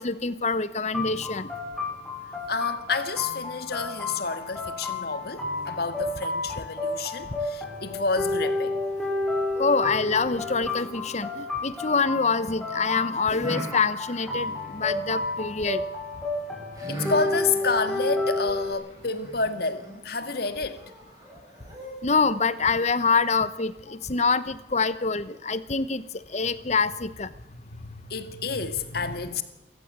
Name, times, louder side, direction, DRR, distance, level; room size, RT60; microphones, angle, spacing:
voice 1, 0.0-1.5 9.6-15.8 22.0-26.0 26.3-27.3, left 4 dB, 40° left, 1.0 m, -25 dB
sound 1, 0.9-18.7, left 2 dB, 5° left, 6.5 m, -31 dB
voice 2, 2.5-8.9 16.9-20.8 27.4-29.4, left 4 dB, 55° left, 1.9 m, -29 dB
sound 2, 10.1-12.4 13.4-15.5 16.7-22.3, right 1 dB, 20° right, 7.5 m, -41 dB
27.5 x 14.5 x 8.2 m
head